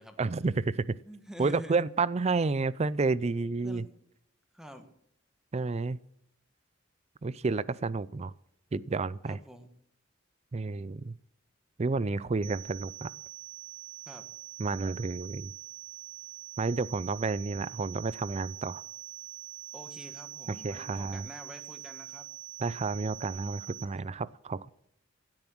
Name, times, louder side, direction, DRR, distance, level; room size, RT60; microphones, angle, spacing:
voice 1, 0.2-1.0 1.4-3.8 5.5-6.0 7.2-8.3 8.7-9.4 10.5-11.1 11.8-13.1 14.6-15.5 16.6-18.8 20.5-21.3 22.6-24.7, right 3 dB, 35° right, 0.4 m, -30 dB
voice 2, 1.0-1.8 3.2-3.9 4.5-4.9 9.2-9.7 14.1-14.2 19.7-22.3, equal, 5° right, 1.4 m, -47 dB
sound 1, 12.4-23.9, right 15 dB, 75° right, 1.6 m, -44 dB
16.0 x 8.8 x 6.1 m
head